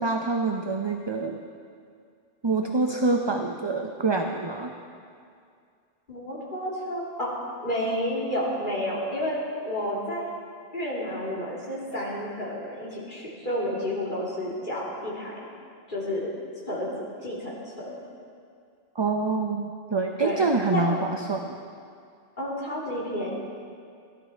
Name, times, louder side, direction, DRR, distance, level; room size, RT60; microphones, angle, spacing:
voice 1, 0.0-1.4 2.4-4.7 18.9-21.5, right 3 dB, 30° right, 3 dB, 0.5 m, -26 dB
voice 2, 6.1-7.3 7.6-10.3 10.7-15.3 15.9-16.3 16.7-16.9 17.2-17.5 17.8-17.9 20.2-20.8 22.4-23.3, equal, 45° left, -6 dB, 3.1 m, -30 dB
15.0 x 12.0 x 4.5 m, 2.3 s
omnidirectional pair, 1.2 m